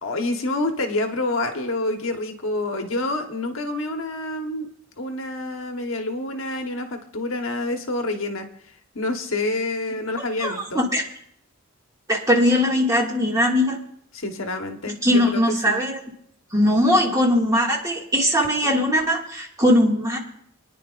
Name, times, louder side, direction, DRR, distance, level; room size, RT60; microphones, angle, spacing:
voice 1, 0.0-4.7 5.0-8.5 8.9-10.9 14.1-15.8, left 2 dB, 65° left, 4 dB, 1.2 m, -27 dB
voice 2, 10.4-11.0 12.1-13.8 15.0-16.0 16.5-20.2, equal, 15° right, -1 dB, 2.0 m, -20 dB
25.0 x 10.0 x 2.5 m, 0.67 s
head